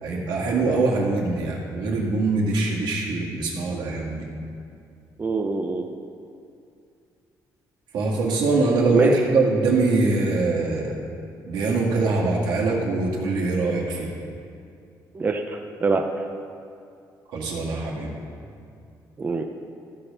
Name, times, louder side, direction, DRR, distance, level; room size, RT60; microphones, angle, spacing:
voice 1, 0.0-4.3 7.9-10.9 11.5-14.1 17.3-18.1, right 3 dB, 85° right, -3 dB, 1.9 m, -23 dB
voice 2, 5.2-5.9 8.9-9.1 15.1-16.0 19.2-19.4, right 4 dB, 25° right, 4 dB, 0.5 m, -23 dB
14.0 x 5.3 x 5.5 m, 2.4 s
cardioid pair, 145°, 7 cm